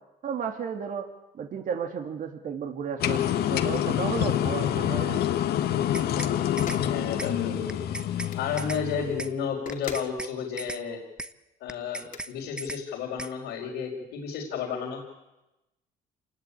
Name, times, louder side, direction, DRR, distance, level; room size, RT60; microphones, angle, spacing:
voice 1, 0.2-1.1 1.3-5.3, right 7 dB, 50° right, 6 dB, 2.4 m, -33 dB
sound 1, 3.0-9.3, left 11 dB, 70° left, 1.6 m, -27 dB
sound 2, 5.7-6.3 6.6-6.8 7.2-7.3 7.7-8.3 8.6-8.8 9.2-9.3 9.7-10.3 10.6-10.8 11.2-11.3 11.7-12.3 12.6-12.8 13.2-13.3, right 1 dB, 5° right, 0.9 m, -37 dB
sound 3, 6.6-6.9 8.2-8.5 9.7-10.1 12.0-12.2, left 7 dB, 55° left, 2.6 m, -40 dB
voice 2, 6.9-7.8 8.3-11.0 11.6-15.0, left 6 dB, 90° left, -5 dB, 4.9 m, -32 dB
27.5 x 19.0 x 8.8 m, 0.99 s
cardioid pair, 110°, 17 cm